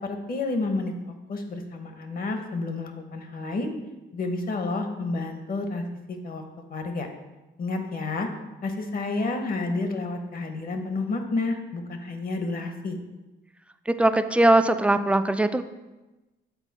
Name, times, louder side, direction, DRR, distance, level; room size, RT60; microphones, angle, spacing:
voice 1, 0.0-0.9 1.3-3.7 4.1-6.4 6.7-7.1 7.6-8.3 8.6-13.0, left 3 dB, 45° left, 5 dB, 1.0 m, -30 dB
voice 2, 13.9-15.6, right 2 dB, 5° right, 10 dB, 0.3 m, -20 dB
7.2 x 4.1 x 4.1 m, 1.1 s
cardioid pair, 90°, 20 cm